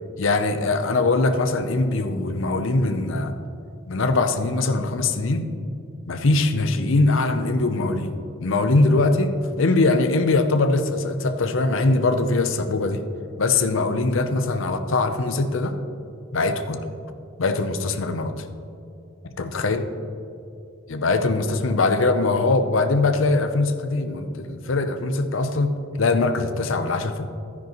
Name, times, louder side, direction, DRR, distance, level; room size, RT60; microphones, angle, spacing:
voice 1, 0.2-3.4 3.9-5.5 6.1-8.1 8.4-13.0 13.4-15.8 16.3-16.9 17.4-18.3 19.4-19.9 20.9-25.7 26.0-27.3, left 3 dB, 70° left, 8 dB, 0.6 m, -22 dB
12.0 x 9.8 x 3.0 m, 2.5 s
head